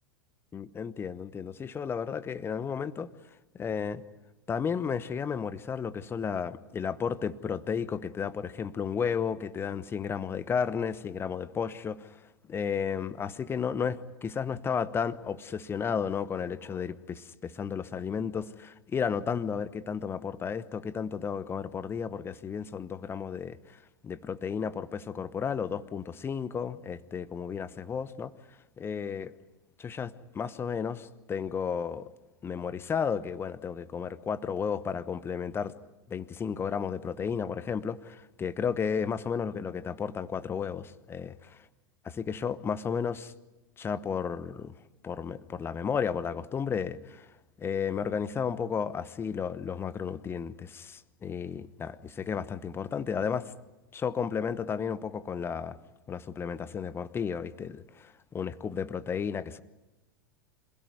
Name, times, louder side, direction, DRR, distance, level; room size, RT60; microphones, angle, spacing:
voice 1, 0.5-3.1 3.5-4.0 4.5-12.2 12.5-28.3 28.8-29.3 29.8-32.1 32.4-35.7 36.1-41.6 42.0-43.3 43.8-44.7 45.0-47.3 47.6-53.5 53.9-55.8 56.1-59.6, left 6 dB, 20° left, 1.0 m, -33 dB
26.5 x 16.5 x 9.4 m
figure-of-eight pair, 90°, 12 cm